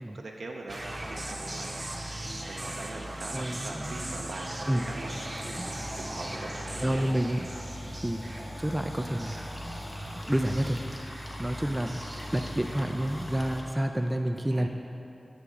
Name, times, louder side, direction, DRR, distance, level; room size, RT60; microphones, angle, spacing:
voice 1, 0.0-1.9 2.5-5.2 5.6-7.1 14.5-14.7, right 2 dB, 70° right, 0 dB, 0.5 m, -42 dB
sound 1, 0.7-13.7, right 1 dB, 30° right, 0.8 m, -39 dB
voice 2, 3.3-4.0 4.7-4.8 5.6-5.7 6.8-7.6 8.0-8.2 8.6-9.4 10.2-10.8 11.4-12.0 12.3-14.7, right 1 dB, 15° right, 5 dB, 0.3 m, -29 dB
sound 2, 4.9-13.6, left 1 dB, 40° left, 0.9 m, -42 dB
8.8 x 3.5 x 6.8 m, 2.8 s
wide cardioid pair, 100°, 0 cm